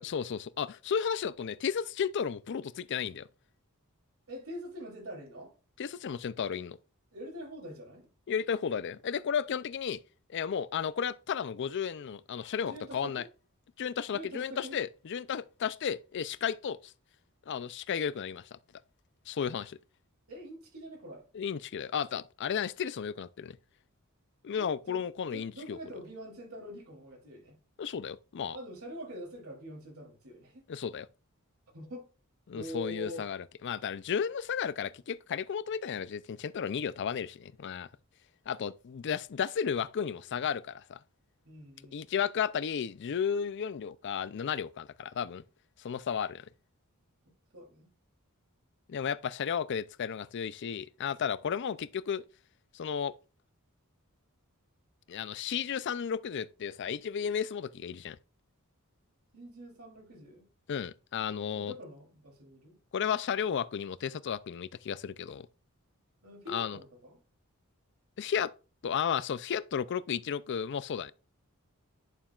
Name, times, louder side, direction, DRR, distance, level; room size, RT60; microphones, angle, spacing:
voice 1, 0.0-3.3 5.8-6.8 8.3-10.0 10.3-13.2 13.8-16.8 17.5-18.6 19.3-19.8 21.3-23.5 24.4-25.8 27.8-28.6 30.7-31.1 32.5-37.9 38.5-41.0 41.9-45.4 45.8-46.5 48.9-52.2 52.7-53.1 55.1-58.2 60.7-61.7 62.9-65.5 66.5-66.8 68.2-68.5 68.8-71.1, left 7 dB, 55° left, 0.4 m, -33 dB
voice 2, 4.3-5.5 7.1-8.1 12.5-13.3 14.1-14.8 20.3-21.3 24.6-25.0 25.3-27.6 28.5-30.6 31.7-32.1 32.5-33.2 41.4-42.0 47.5-47.9 59.3-60.4 61.5-62.8 66.2-67.2, equal, 75° right, 3.1 m, -45 dB
11.0 x 7.2 x 2.4 m
head